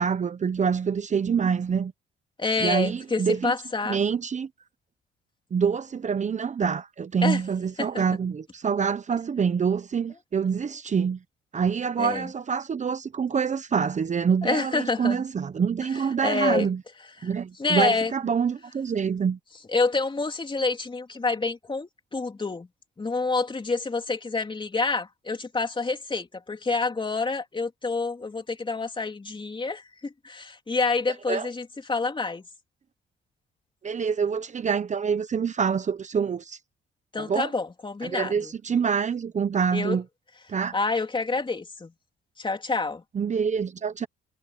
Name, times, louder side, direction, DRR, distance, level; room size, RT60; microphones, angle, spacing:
voice 1, 0.0-1.9 2.6-3.5 3.8-4.5 5.5-11.2 11.5-16.8 17.2-19.4 31.3-31.5 33.8-36.6 37.2-37.5 38.0-40.0 40.5-40.7 43.1-44.1, right 6 dB, 35° right, 0.9 m, -26 dB
voice 2, 2.4-4.0 7.2-7.4 7.8-8.0 12.0-12.3 14.4-15.2 16.2-16.7 17.2-17.3 17.6-18.1 19.7-22.7 23.0-32.4 37.1-38.5 39.7-40.0 40.7-41.9 42.4-43.0, left 3 dB, 25° left, 3.3 m, -28 dB
cardioid pair, 90°, 20 cm